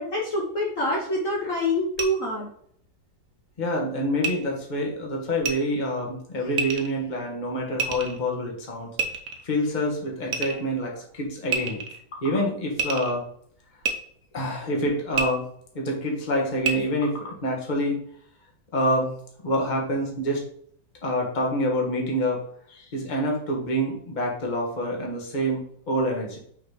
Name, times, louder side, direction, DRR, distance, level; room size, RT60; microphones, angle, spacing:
voice 1, 0.0-2.5, left 1 dB, 50° left, -3 dB, 1.5 m, -26 dB
sound 1, 2.0-2.1 4.2-4.3 5.4-5.5 6.6-6.9 7.8-8.2 9.0-9.5 10.3-10.7 11.5-12.0 12.8-13.1 13.8-13.9 15.1-15.3 16.6-16.7, right 5 dB, 55° right, 1.2 m, -27 dB
voice 2, 3.6-8.9 9.4-11.8 12.1-13.2 14.3-15.4 15.7-18.0 18.7-19.2 19.4-20.4 21.0-22.4 22.7-26.4, equal, 25° left, -1 dB, 1.4 m, -27 dB
5.8 x 4.1 x 4.8 m, 0.62 s
omnidirectional pair, 2.0 m